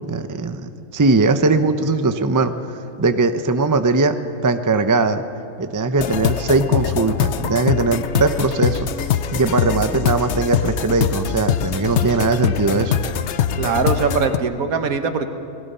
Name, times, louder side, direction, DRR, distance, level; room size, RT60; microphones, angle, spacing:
voice 1, 0.1-2.7 3.0-4.2 4.4-5.2 5.6-13.0, right 3 dB, 25° right, 9 dB, 0.4 m, -20 dB
sound 1, 6.0-14.4, left 9 dB, 60° left, 0.8 m, -22 dB
voice 2, 13.6-15.3, right 5 dB, 65° right, 8 dB, 1.6 m, -21 dB
29.5 x 19.5 x 5.6 m, 2.7 s
omnidirectional pair, 1.6 m